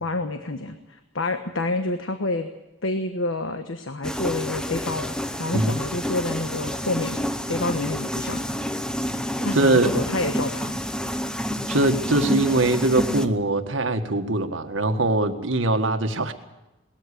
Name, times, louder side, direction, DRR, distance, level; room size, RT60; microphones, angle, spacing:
voice 1, 0.0-2.5 2.8-5.1 5.4-7.2 7.5-8.4 9.4-10.8, left 2 dB, 90° left, 7 dB, 1.3 m, -28 dB
sound 1, 4.0-13.3, equal, 5° left, 0.7 m, -29 dB
voice 2, 9.5-9.9 11.7-16.3, right 2 dB, 80° right, 7 dB, 1.7 m, -22 dB
19.5 x 14.0 x 9.9 m, 0.99 s
head